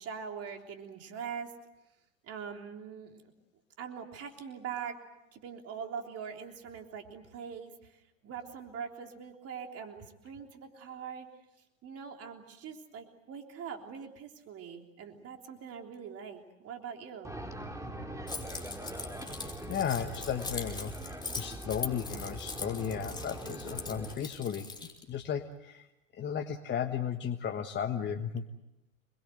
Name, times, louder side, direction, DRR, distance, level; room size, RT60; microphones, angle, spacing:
voice 1, 0.0-1.5 2.2-3.3 3.8-5.0 5.3-11.3 11.8-17.4, right 7 dB, 35° right, 4 dB, 3.5 m, -43 dB
sound 1, 17.2-24.2, right 1 dB, 5° right, 3.8 m, -42 dB
Keys jangling, 18.3-25.0, left 4 dB, 10° left, 3.9 m, -42 dB
voice 2, 19.3-24.7 25.1-25.9 26.1-28.5, left 8 dB, 25° left, 6 dB, 1.5 m, -35 dB
27.0 x 22.0 x 7.9 m, 0.92 s
hypercardioid pair, 100°, 40 cm